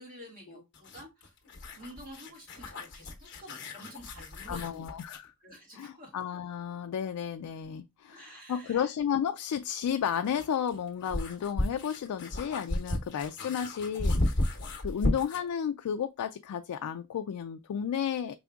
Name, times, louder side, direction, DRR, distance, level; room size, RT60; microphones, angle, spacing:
voice 1, 0.0-1.3 1.7-4.9 5.4-6.1 8.1-8.9 14.9-15.1, equal, 40° right, 1.9 m, -49 dB
sound 1, 0.7-5.3 7.6-7.7 9.7-15.5, left 1 dB, 55° left, 1.0 m, -34 dB
voice 2, 4.5-5.3 5.7-14.2 14.8-18.3, left 8 dB, 90° left, 0.3 m, -33 dB
5.0 x 3.4 x 2.3 m
head